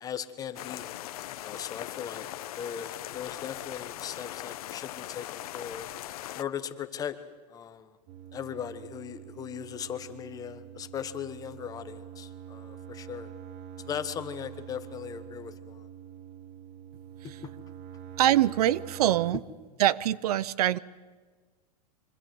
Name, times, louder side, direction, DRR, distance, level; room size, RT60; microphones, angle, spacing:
voice 1, 0.0-0.9 1.4-2.3 2.6-5.9 6.3-7.2 7.5-8.0 8.3-13.3 13.8-15.9 17.4-17.5, left 8 dB, 20° left, 10 dB, 1.3 m, -38 dB
sound 1, 0.5-6.4, left 14 dB, 65° left, 0.9 m, -40 dB
sound 2, 8.1-19.3, right 9 dB, 35° right, 1.0 m, -45 dB
voice 2, 18.2-19.4 19.8-20.8, right 12 dB, 70° right, 20 dB, 0.8 m, -24 dB
25.5 x 25.0 x 8.0 m, 1.4 s
supercardioid pair, 155°, 20 cm